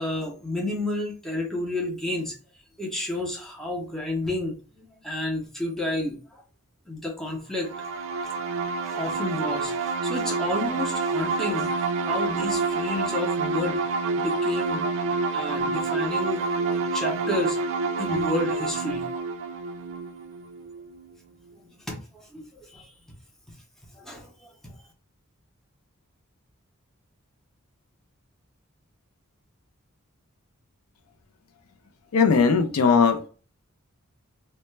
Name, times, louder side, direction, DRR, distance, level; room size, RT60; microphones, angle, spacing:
voice 1, 0.0-2.4 2.8-6.4 6.9-7.7 8.8-11.7 12.0-13.8 14.2-14.8 15.3-17.6 18.0-19.0 21.5-22.9 23.9-24.7, left 1 dB, ahead, -1 dB, 0.5 m, -31 dB
sound 1, 7.6-21.1, right 4 dB, 60° right, 0.3 m, -28 dB
voice 2, 32.1-33.3, left 5 dB, 90° left, 8 dB, 0.4 m, -19 dB
2.2 x 2.1 x 3.1 m, 0.37 s
head